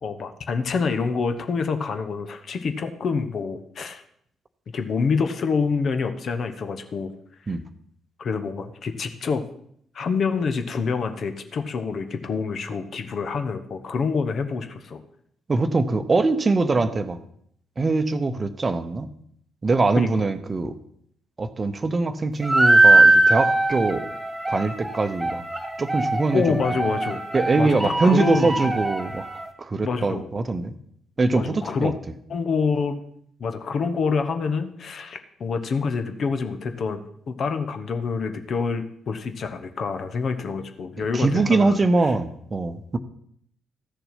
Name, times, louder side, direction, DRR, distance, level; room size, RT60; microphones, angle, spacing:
voice 1, 0.0-4.0 4.7-7.1 8.2-9.4 9.9-15.0 20.0-20.1 26.3-27.2 27.6-28.6 29.8-30.3 31.3-31.9 32.3-33.0 33.4-37.0 37.3-42.1, left 5 dB, 50° left, 8 dB, 1.0 m, -27 dB
voice 2, 15.5-17.2 17.8-19.1 19.6-20.7 21.4-24.1 24.5-25.4 25.8-26.6 27.3-29.2 29.6-30.7 31.2-31.9 41.1-43.0, right 3 dB, 30° right, 10 dB, 0.8 m, -22 dB
sound 1, 22.4-29.5, right 2 dB, 10° right, 1.8 m, -21 dB
13.5 x 6.8 x 5.7 m, 0.67 s
figure-of-eight pair, 40°, 0 cm